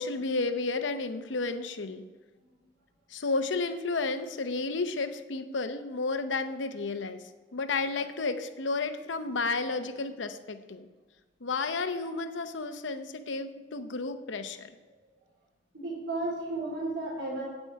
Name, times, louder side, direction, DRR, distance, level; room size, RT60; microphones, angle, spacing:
voice 1, 0.0-2.0 3.1-7.2 7.5-10.9 11.4-14.7, left 3 dB, 75° left, 9 dB, 0.8 m, -32 dB
voice 2, 15.7-17.4, right 2 dB, 85° right, -4 dB, 3.6 m, -33 dB
8.9 x 8.7 x 4.6 m, 1.4 s
head